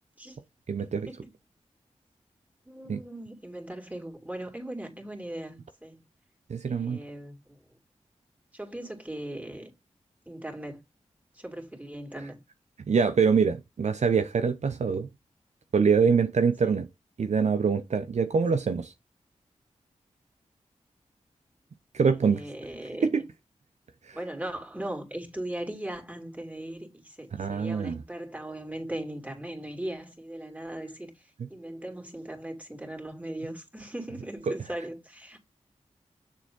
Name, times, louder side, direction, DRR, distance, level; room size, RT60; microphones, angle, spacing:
voice 1, 0.7-1.1 2.9-3.0 6.5-7.0 12.9-15.1 15.7-16.9 17.2-18.9 21.9-22.4 23.0-23.2 24.1-24.2 27.4-28.0 31.4-31.5 34.5-34.6, right 5 dB, 65° right, 0.6 m, -24 dB
voice 2, 2.7-6.0 6.7-7.6 8.5-9.7 10.3-10.8 11.3-12.4 22.2-23.2 24.1-35.4, right 1 dB, 10° right, 2.9 m, -39 dB
6.9 x 4.5 x 3.9 m
cardioid pair, 40°, 13 cm